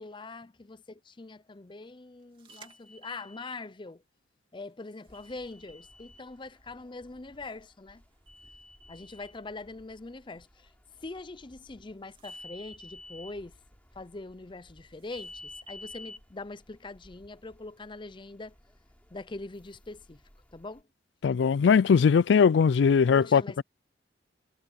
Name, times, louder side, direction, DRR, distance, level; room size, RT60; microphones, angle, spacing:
voice 1, 0.0-4.0 4.5-8.0 8.9-10.7 11.0-13.5 14.0-18.5 19.1-20.2 20.5-20.8 23.1-23.6, left 3 dB, 25° left, 0.6 m, -43 dB
sound 1, 2.5-3.6 5.1-6.2 8.3-9.3 12.2-13.3 15.1-16.2, left 2 dB, 30° right, 2.9 m, -48 dB
sound 2, 5.1-20.8, equal, 10° left, 7.2 m, -61 dB
voice 2, 21.2-23.4, left 6 dB, 70° left, 0.3 m, -20 dB
head